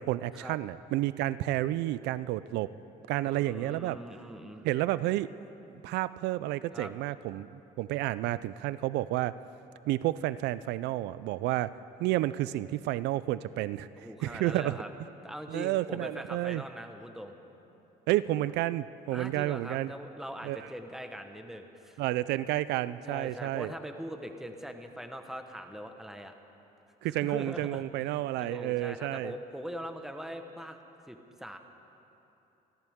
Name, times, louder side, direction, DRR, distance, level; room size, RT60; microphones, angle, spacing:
voice 1, 0.0-2.7 3.1-4.0 4.6-5.3 5.8-9.3 9.9-11.7 12.0-13.9 14.2-14.8 15.5-16.6 18.1-19.9 20.4-20.7 22.0-23.7 27.0-29.3, right 15 dB, 85° right, 16 dB, 0.4 m, -30 dB
voice 2, 3.2-4.7 6.7-6.9 14.0-14.9 15.2-17.3 19.1-22.0 23.0-26.3 27.0-27.8 28.4-30.8 31.1-31.6, equal, ahead, 5 dB, 1.2 m, -42 dB
28.0 x 13.5 x 3.6 m, 3.0 s
cardioid pair, 110°, 17 cm